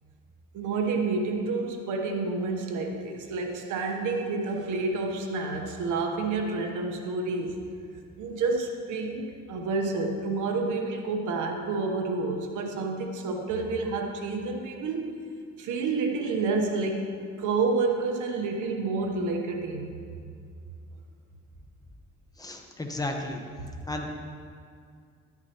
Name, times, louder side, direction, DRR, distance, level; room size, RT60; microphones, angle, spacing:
voice 1, 0.5-7.6 8.2-15.1 15.6-19.9, right 3 dB, 80° right, 3 dB, 1.1 m, -29 dB
voice 2, 22.4-23.4 23.9-24.1, left 2 dB, 10° left, 2 dB, 1.1 m, -33 dB
11.5 x 9.6 x 3.0 m, 2.2 s
cardioid pair, 90°, 30 cm